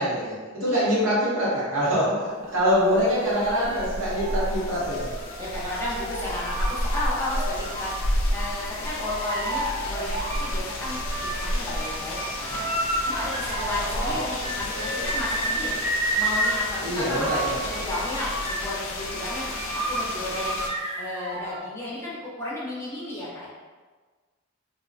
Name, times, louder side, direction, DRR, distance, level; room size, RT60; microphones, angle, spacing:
voice 1, 0.0-5.1 13.9-14.2 14.7-15.1 16.8-17.7, equal, 75° right, -7 dB, 0.9 m, -25 dB
sound 1, 2.6-20.7, left 1 dB, 75° left, 0.4 m, -32 dB
sound 2, 3.3-8.0 8.4-10.5 10.8-21.6, right 1 dB, 25° right, 0.8 m, -32 dB
voice 2, 5.4-15.8 16.2-17.4 17.7-20.6 21.0-23.5, left 1 dB, 15° left, -8 dB, 0.6 m, -33 dB
2.5 x 2.1 x 2.5 m, 1.4 s
head